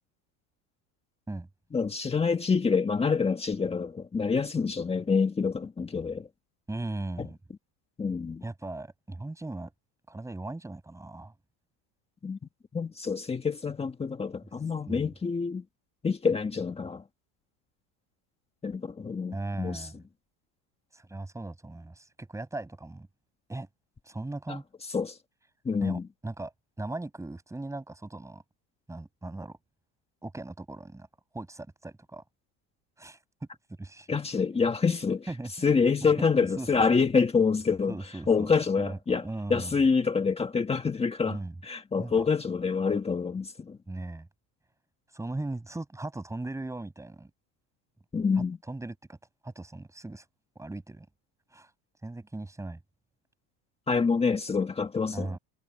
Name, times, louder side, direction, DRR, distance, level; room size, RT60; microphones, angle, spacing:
voice 1, 1.7-6.3 7.2-7.3 8.0-8.4 12.2-12.4 12.7-15.6 16.0-17.0 18.6-19.9 24.5-24.6 24.9-25.2 25.6-26.1 34.1-35.3 35.6-38.0 38.3-43.8 48.1-48.6 53.9-55.4, left 5 dB, 15° left, 1.8 m, -27 dB
voice 2, 6.7-7.4 8.4-9.7 10.1-11.3 14.9-15.1 19.3-20.0 20.9-23.1 23.5-23.7 24.0-24.6 25.8-28.4 28.9-29.6 30.2-31.1 31.3-32.2 33.0-33.2 33.8-34.1 35.3-35.7 36.6-36.7 37.9-38.5 38.8-39.7 41.3-41.5 42.0-42.2 43.9-44.3 45.1-47.3 48.4-49.2 49.4-50.3 50.5-51.1 51.5-51.7 52.0-52.8 55.1-55.4, right 2 dB, 5° right, 6.1 m, -38 dB
cardioid pair, 150°, 44 cm